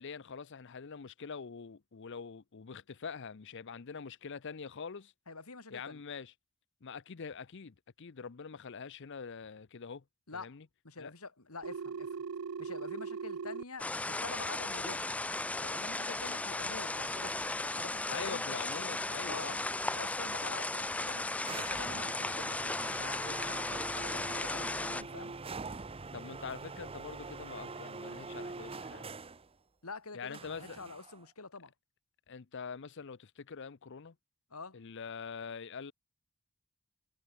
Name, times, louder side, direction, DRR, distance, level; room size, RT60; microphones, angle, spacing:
voice 1, 0.0-5.1 5.7-6.3 6.8-10.0 10.3-10.7 11.0-11.1 18.1-19.6 26.1-29.1 30.1-30.8 32.3-34.1 34.7-35.9, left 5 dB, 55° left, 0.6 m, -44 dB
voice 2, 5.3-6.0 10.3-10.6 10.8-12.2 12.6-15.1 15.6-18.4 19.3-19.6 19.9-25.3 29.8-31.7 34.5-34.8, left 3 dB, 85° left, 3.1 m, -46 dB
Telephone, 11.6-13.6, right 5 dB, 80° right, 0.6 m, -39 dB
sound 1, 13.8-25.0, left 2 dB, 5° left, 0.3 m, -36 dB
sound 2, 21.4-29.5 30.3-31.2, right 3 dB, 25° right, 0.8 m, -44 dB
head